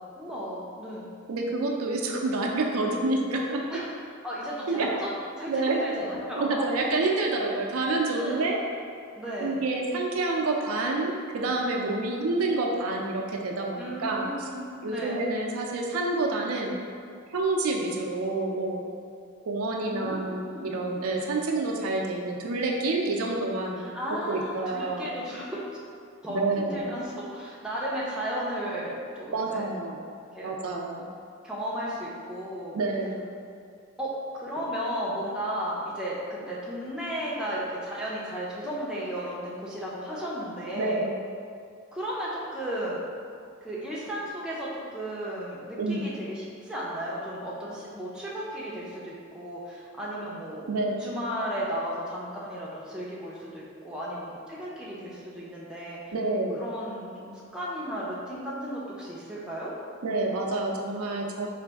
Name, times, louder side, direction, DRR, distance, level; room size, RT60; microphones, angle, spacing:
voice 1, 0.2-1.1 3.7-3.9 4.2-5.1 5.4-6.6 8.1-8.6 9.1-9.6 13.7-15.2 19.8-20.7 23.8-25.6 26.2-29.7 30.3-30.5 31.4-32.8 34.0-41.1 41.9-43.0 43.6-50.7 51.0-56.0 56.6-59.7, equal, 5° right, -7 dB, 0.5 m, -34 dB
voice 2, 1.3-3.6 4.7-4.9 5.5-5.8 6.4-8.6 9.4-14.5 14.8-16.8 17.3-18.8 19.5-24.0 24.3-25.1 26.3-26.8 29.3-30.0 30.4-31.1 32.7-33.3 40.7-41.1 45.8-46.0 50.7-51.0 56.1-56.6 60.0-61.5, right 2 dB, 80° right, 0 dB, 0.5 m, -28 dB
4.0 x 2.5 x 3.4 m, 2.3 s
head